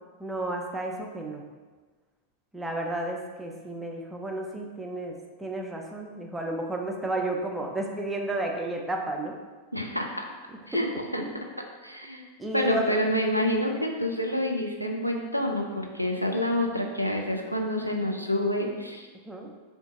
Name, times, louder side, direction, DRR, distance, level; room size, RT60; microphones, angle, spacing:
voice 1, 0.2-1.4 2.5-9.4 10.5-10.8 12.4-13.0 19.3-19.5, right 1 dB, 5° right, 0 dB, 0.5 m, -32 dB
voice 2, 9.7-10.1 10.7-11.2 11.8-12.2 12.5-19.1, left 1 dB, 90° left, 1 dB, 0.4 m, -28 dB
3.7 x 2.6 x 3.5 m, 1.3 s
figure-of-eight pair, 90°, 0 cm